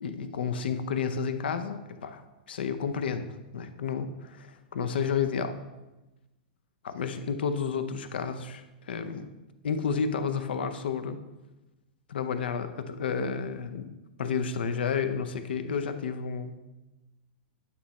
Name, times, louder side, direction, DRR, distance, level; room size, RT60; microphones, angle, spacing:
voice 1, 0.0-5.6 6.8-9.3 9.6-11.2 12.1-13.9 14.2-16.6, left 6 dB, 80° left, 10 dB, 0.6 m, -31 dB
8.6 x 3.1 x 4.0 m, 1.1 s
hypercardioid pair, 130°, 5 cm